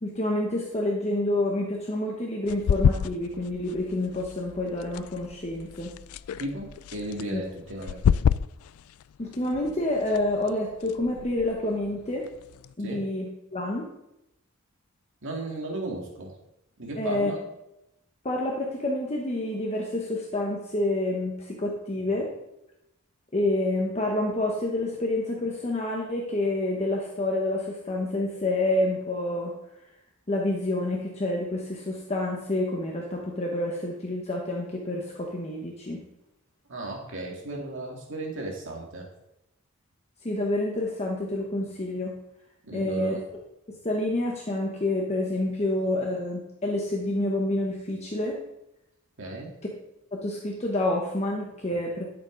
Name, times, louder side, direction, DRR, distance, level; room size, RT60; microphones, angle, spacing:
voice 1, 0.0-5.9 7.3-7.4 9.2-12.3 12.8-13.3 13.5-13.9 17.0-17.3 18.2-22.3 23.3-29.5 30.3-36.0 40.2-42.1 42.7-43.2 43.7-48.4 50.1-52.1, left 1 dB, 30° left, -1 dB, 1.2 m, -28 dB
sound 1, 2.5-12.7, left 7 dB, 80° left, 0.3 m, -30 dB
voice 2, 6.4-8.1 12.8-13.0 15.2-16.3 16.8-17.4 36.7-39.1 42.7-43.2 49.2-49.5, right 2 dB, 65° right, -1 dB, 2.3 m, -35 dB
11.5 x 7.1 x 4.0 m, 0.87 s
head